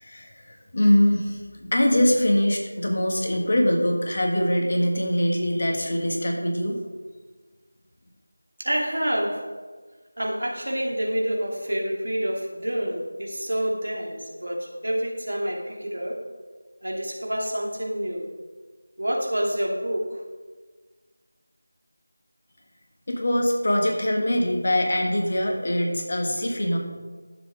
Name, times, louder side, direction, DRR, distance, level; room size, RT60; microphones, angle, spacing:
voice 1, 0.0-6.8 23.1-26.8, left 1 dB, 45° left, 1 dB, 1.7 m, -23 dB
voice 2, 8.6-9.5 10.2-16.2 16.8-18.3 19.0-20.2, equal, 65° right, -1 dB, 2.5 m, -28 dB
13.5 x 7.3 x 3.6 m, 1.4 s
figure-of-eight pair, 170°, 0 cm